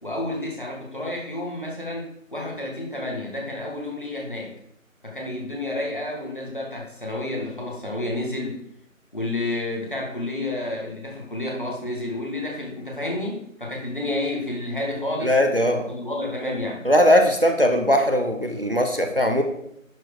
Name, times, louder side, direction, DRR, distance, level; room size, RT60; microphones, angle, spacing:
voice 1, 0.0-4.5 5.0-8.6 9.1-15.4 15.9-16.8, left 1 dB, 40° left, -2 dB, 1.9 m, -30 dB
voice 2, 15.2-15.8 16.8-19.4, equal, 45° right, 4 dB, 0.9 m, -19 dB
10.5 x 4.3 x 4.9 m, 0.75 s
figure-of-eight pair, 175°, 41 cm